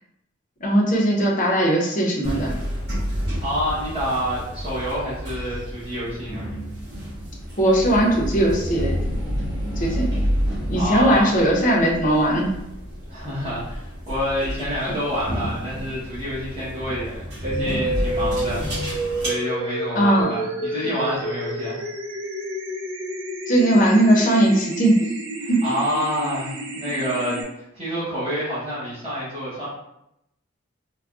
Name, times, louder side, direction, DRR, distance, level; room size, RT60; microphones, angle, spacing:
voice 1, 0.6-2.5 7.6-9.0 9.8-10.1 10.7-12.6 19.9-20.3 23.5-25.0 25.5-25.6, right 1 dB, 40° left, -3 dB, 0.6 m, -19 dB
sound 1, 2.2-19.3, equal, 55° right, 1.2 m, -29 dB
voice 2, 3.4-6.4 10.7-11.3 13.1-21.8 25.4-27.4 27.7-29.7, equal, 30° right, -11 dB, 1.0 m, -28 dB
sound 2, 17.4-27.4, right 1 dB, 75° right, 0.6 m, -30 dB
3.4 x 2.2 x 2.4 m, 0.82 s
head